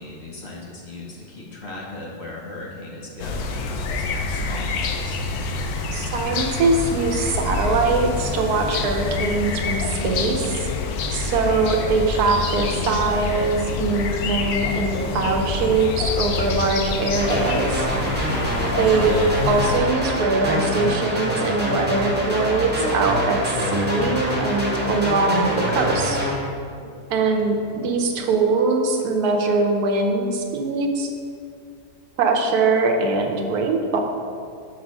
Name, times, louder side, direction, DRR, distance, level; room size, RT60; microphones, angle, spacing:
voice 1, 0.0-5.2 18.9-19.2 27.3-27.5, left 2 dB, 50° left, -3 dB, 1.2 m, -37 dB
sound 1, 3.2-19.8, left 4 dB, 80° left, 1.1 m, -27 dB
voice 2, 5.9-10.7 11.1-17.9 18.8-19.2 19.5-26.2 27.1-27.6 27.8-31.1 32.2-34.0, right 3 dB, 80° right, 3 dB, 1.3 m, -22 dB
sound 2, 10.0-28.4, right 2 dB, 40° right, 0.6 m, -43 dB
sound 3, 17.2-26.3, equal, 10° right, 0.8 m, -25 dB
6.3 x 4.0 x 6.0 m, 2.3 s
omnidirectional pair, 1.6 m